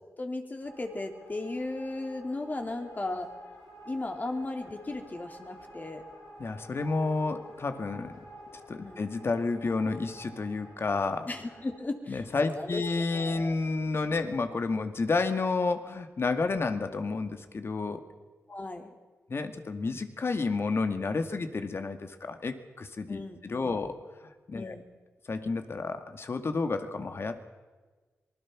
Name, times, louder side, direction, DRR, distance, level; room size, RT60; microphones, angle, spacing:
voice 1, 0.2-3.3 3.8-6.0 8.8-9.0 11.3-12.8 13.1-13.6 18.5-18.9 23.1-23.8 24.5-24.9, left 2 dB, 35° left, 4 dB, 3.4 m, -36 dB
sound 1, 0.6-11.8, equal, 85° left, 6.2 m, -50 dB
voice 2, 6.4-8.2 8.5-11.3 12.1-18.0 19.3-24.8 25.3-27.5, left 3 dB, 55° left, 8 dB, 2.2 m, -31 dB
26.0 x 20.5 x 6.2 m, 1.4 s
cardioid pair, 55°, 5 cm